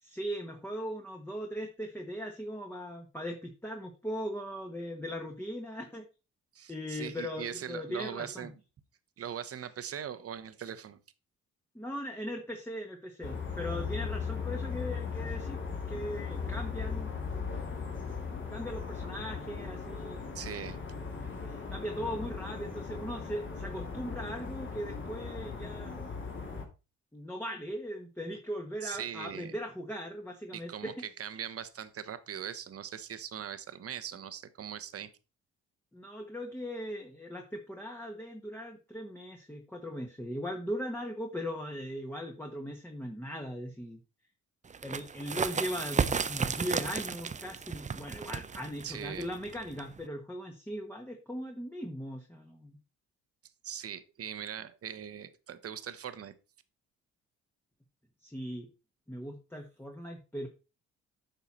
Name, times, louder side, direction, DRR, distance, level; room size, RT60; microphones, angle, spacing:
voice 1, 0.0-6.0 6.7-8.5 11.7-15.6 15.9-17.1 18.2-20.4 21.4-26.0 27.1-30.9 35.9-44.0 44.8-52.8 58.2-58.7 59.1-60.5, equal, 5° left, 2 dB, 1.4 m, -39 dB
voice 2, 6.5-8.5 9.2-11.0 20.3-20.8 28.8-29.5 30.5-30.9 31.2-35.1 48.8-49.3 53.6-56.3, right 9 dB, 50° right, 12 dB, 1.0 m, -40 dB
sound 1, 13.2-26.6, left 5 dB, 40° left, 2.7 m, -38 dB
sound 2, 44.7-50.1, right 6 dB, 25° right, 0.6 m, -34 dB
9.2 x 5.7 x 4.3 m, 0.31 s
cardioid pair, 90°, 30 cm